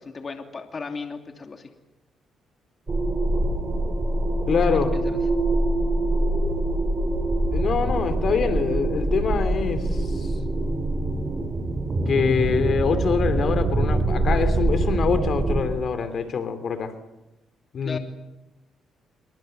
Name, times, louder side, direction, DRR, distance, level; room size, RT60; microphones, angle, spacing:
voice 1, 0.0-1.7 4.6-5.2 17.8-18.0, left 4 dB, 35° left, 5 dB, 2.8 m, -36 dB
sound 1, 2.9-15.6, right 2 dB, 30° right, 4.8 m, -24 dB
voice 2, 4.5-4.9 7.5-10.3 12.1-16.9 17.7-18.0, left 5 dB, 55° left, 10 dB, 3.1 m, -24 dB
27.5 x 23.5 x 8.0 m, 0.95 s
cardioid pair, 90°, 0 cm